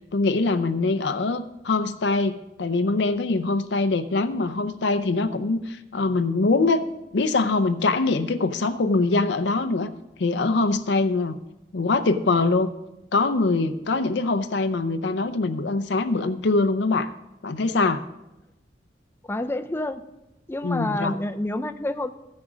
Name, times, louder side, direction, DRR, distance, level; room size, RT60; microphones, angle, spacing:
voice 1, 0.1-6.8 7.1-9.9 10.2-11.4 11.7-12.7 13.1-17.1 17.4-18.0 20.6-21.1, left 3 dB, 75° left, 10 dB, 0.6 m, -23 dB
voice 2, 19.3-20.0 20.5-22.1, left 1 dB, 15° left, 10 dB, 0.4 m, -28 dB
14.0 x 6.3 x 6.1 m, 0.95 s
head